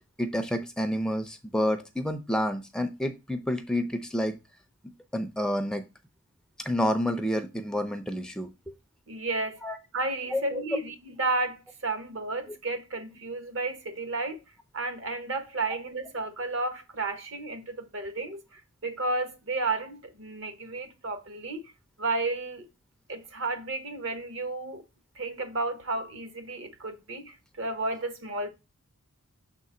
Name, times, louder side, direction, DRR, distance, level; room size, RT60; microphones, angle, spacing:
voice 1, 0.2-4.4 5.1-5.8 6.6-8.7 9.6-9.8 10.3-10.6, equal, 5° left, 0.4 m, -29 dB
voice 2, 9.1-9.6 9.9-14.4 14.7-21.6 22.0-22.7 23.1-24.8 25.1-28.5, right 2 dB, 60° right, 1.1 m, -32 dB
6.3 x 3.7 x 4.2 m
head